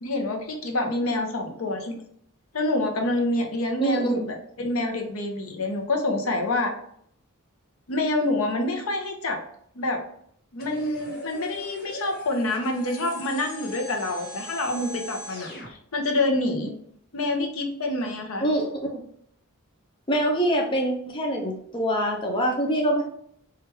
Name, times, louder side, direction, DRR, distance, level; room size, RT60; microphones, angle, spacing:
voice 1, 0.0-2.0 2.5-6.7 7.9-9.4 9.8-10.0 10.5-16.7 17.1-18.5, left 2 dB, 70° left, 3 dB, 0.7 m, -27 dB
voice 2, 3.8-4.3 18.4-19.0 20.1-23.0, right 1 dB, 20° left, 0 dB, 0.5 m, -25 dB
sound 1, 10.6-15.7, left 1 dB, 45° left, 1.0 m, -40 dB
4.5 x 2.4 x 3.1 m, 0.66 s
head